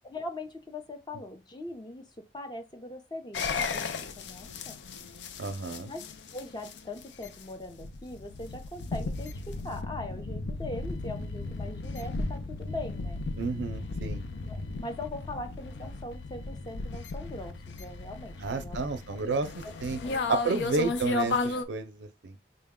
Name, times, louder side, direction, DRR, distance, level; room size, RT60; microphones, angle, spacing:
voice 1, 0.0-4.8 5.9-6.0 6.3-13.2 14.4-18.8 19.1-19.7 20.0-20.7, left 2 dB, 25° left, 0.6 m, -41 dB
sound 1, 3.3-21.6, left 3 dB, 80° left, 0.5 m, -35 dB
voice 2, 5.4-5.9 13.4-14.2 18.4-19.5 19.8-20.0 20.3-22.4, right 3 dB, 90° right, 0.5 m, -31 dB
3.9 x 2.2 x 3.6 m
head